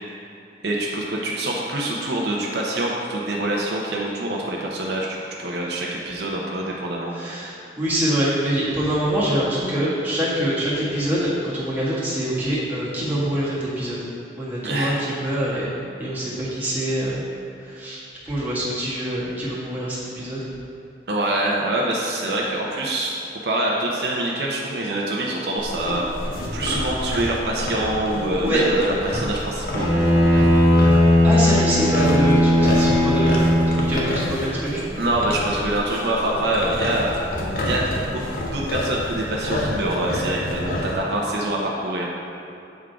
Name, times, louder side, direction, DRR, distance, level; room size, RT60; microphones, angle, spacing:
voice 1, 0.6-5.1 5.4-7.1 14.6-15.0 21.1-23.1 23.4-26.1 26.5-29.9 35.0-37.1 37.6-37.9 38.1-38.2 38.5-42.1, right 1 dB, 65° right, -3 dB, 0.8 m, -25 dB
voice 2, 7.1-14.0 14.4-15.7 16.0-17.2 17.6-20.4 28.4-28.6 31.2-33.4 33.7-34.8, right 1 dB, 10° right, -9 dB, 1.6 m, -25 dB
sound 1, 25.6-41.0, left 1 dB, 50° left, 0.9 m, -29 dB
Bowed string instrument, 29.7-34.2, left 1 dB, 25° left, 1.5 m, -17 dB
8.2 x 3.8 x 4.6 m, 2.7 s
head